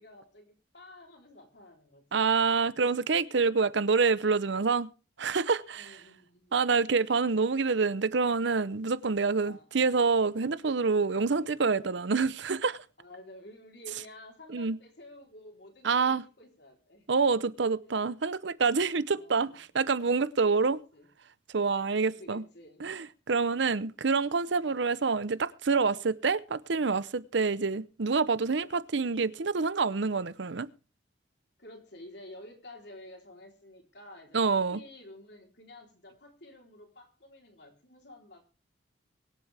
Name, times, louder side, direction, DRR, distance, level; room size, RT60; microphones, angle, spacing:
voice 1, 0.0-2.2 5.8-6.8 9.0-10.2 13.0-17.1 17.9-18.0 19.1-19.6 20.4-21.1 22.0-22.9 23.5-23.9 31.6-38.6, left 1 dB, 60° left, 3.5 m, -51 dB
voice 2, 2.1-4.9 5.2-6.0 6.5-12.8 14.5-14.8 15.8-16.2 17.1-20.8 21.5-22.4 22.8-30.7 34.3-34.8, right 4 dB, 65° right, 0.7 m, -27 dB
23.5 x 8.0 x 3.4 m
head